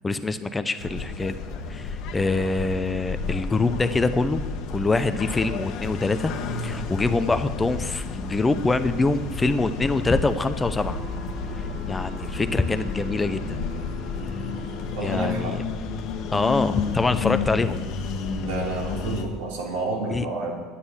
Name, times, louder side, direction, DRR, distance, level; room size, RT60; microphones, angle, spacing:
voice 1, 0.0-1.4 1.7-4.4 4.7-6.3 6.6-11.0 11.6-13.6 15.0-15.6 16.3-17.8 20.1-20.3, left 3 dB, 15° left, 11 dB, 0.6 m, -25 dB
sound 1, 0.8-19.2, left 4 dB, 60° left, 1.2 m, -31 dB
sound 2, 10.8-15.1, left 2 dB, 50° right, 2.3 m, -43 dB
voice 2, 15.0-15.6 18.4-20.6, right 3 dB, 90° right, -2 dB, 3.1 m, -30 dB
9.9 x 9.5 x 7.2 m, 1.5 s
supercardioid pair, 115°, 0 cm